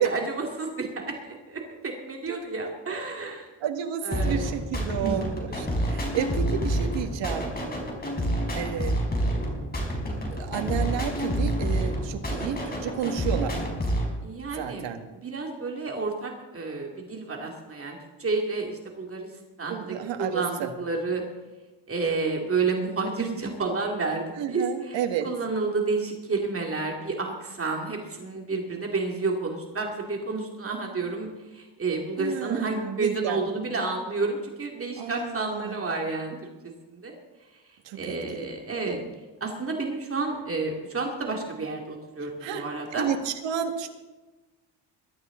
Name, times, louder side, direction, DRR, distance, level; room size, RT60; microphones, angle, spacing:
voice 1, 0.0-3.5 4.0-4.5 5.0-5.2 14.2-19.3 19.6-21.2 21.9-36.4 36.6-36.7 37.0-37.1 37.9-39.0 39.4-43.1, right 3 dB, 30° right, 1 dB, 2.5 m, -30 dB
voice 2, 3.6-7.5 8.5-8.9 10.3-13.6 14.5-15.0 19.7-20.7 24.4-25.3 32.2-33.4 35.0-35.8 37.8-38.4 38.8-39.1 42.4-42.7 42.9-43.9, right 9 dB, 75° right, 5 dB, 2.1 m, -31 dB
sound 1, 4.1-14.1, equal, 20° left, 4.4 m, -28 dB
21.5 x 13.0 x 3.9 m, 1.2 s
cardioid pair, 125°, 44 cm